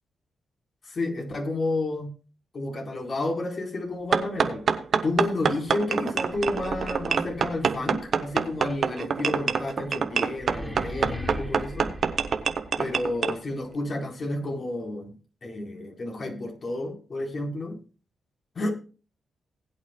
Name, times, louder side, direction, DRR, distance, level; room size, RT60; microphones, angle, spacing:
voice 1, 0.9-2.1 2.5-4.6 5.0-11.9 12.8-15.1 15.4-17.8 18.6-18.7, left 2 dB, 50° left, 1 dB, 4.1 m, -31 dB
sound 1, 4.1-13.4, right 6 dB, 60° right, 1.2 m, -26 dB
sound 2, 6.2-13.1, left 1 dB, 5° left, 3.5 m, -40 dB
20.0 x 8.7 x 2.3 m, 0.35 s
cardioid pair, 80°, 0 cm